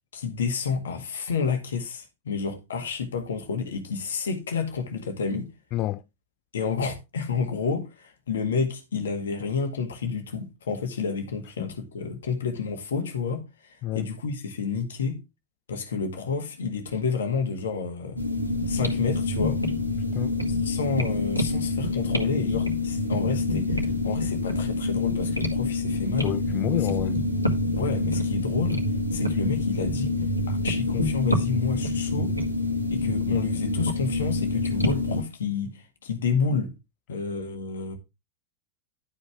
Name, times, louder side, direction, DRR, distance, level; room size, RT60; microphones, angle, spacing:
voice 1, 0.1-5.5 6.5-15.2 15.7-18.2 18.7-19.6 20.6-26.3 27.0-27.2 27.8-28.8 29.1-30.1 30.5-32.3 32.9-36.7 37.1-38.0, left 5 dB, 65° left, 1.9 m, -30 dB
voice 2, 5.7-6.0 11.6-11.7 13.8-14.1 20.1-20.3 26.2-27.1, left 15 dB, 40° left, 0.4 m, -29 dB
sound 1, 18.2-35.2, left 2 dB, 85° left, 1.8 m, -26 dB
11.5 x 5.5 x 3.6 m
figure-of-eight pair, 90°, 0 cm